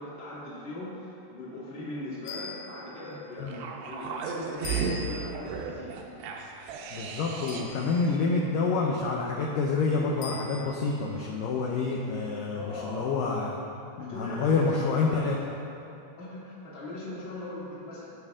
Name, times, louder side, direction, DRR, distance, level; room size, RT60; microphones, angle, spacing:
voice 1, 0.0-6.0 12.5-13.1 14.0-14.6 15.0-15.1 16.1-18.1, left 1 dB, 20° left, -7 dB, 1.4 m, -40 dB
sound 1, 2.2-3.1 4.6-5.5 7.5-8.2 10.2-10.9, left 5 dB, 70° left, 2.8 m, -41 dB
sound 2, 3.5-7.9 8.1-8.2, right 5 dB, 85° right, 2.9 m, -35 dB
voice 2, 6.9-13.7 14.0-15.4, left 4 dB, 85° left, -2 dB, 1.9 m, -28 dB
17.5 x 6.7 x 3.6 m, 2.9 s
omnidirectional pair, 4.9 m